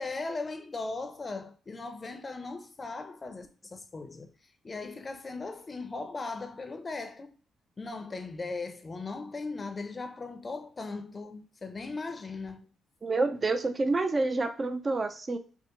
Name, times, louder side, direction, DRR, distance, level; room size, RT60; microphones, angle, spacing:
voice 1, 0.0-4.3 4.6-7.3 7.8-12.7, left 3 dB, 30° left, 0.6 m, -38 dB
voice 2, 13.0-15.4, right 3 dB, 30° right, 0.4 m, -28 dB
5.2 x 2.0 x 3.1 m
cardioid pair, 90°, 0 cm